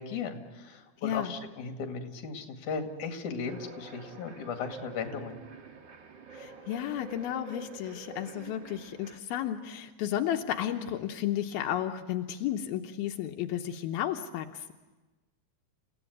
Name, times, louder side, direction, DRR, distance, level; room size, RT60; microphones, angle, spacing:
voice 1, 0.0-5.4, left 5 dB, 60° left, 5 dB, 3.3 m, -36 dB
voice 2, 1.0-1.3 6.3-14.7, left 11 dB, 85° left, 4 dB, 2.8 m, -33 dB
sound 1, 3.4-9.2, right 4 dB, 55° right, 1.3 m, -47 dB
29.5 x 16.5 x 9.5 m, 1.2 s
omnidirectional pair, 4.3 m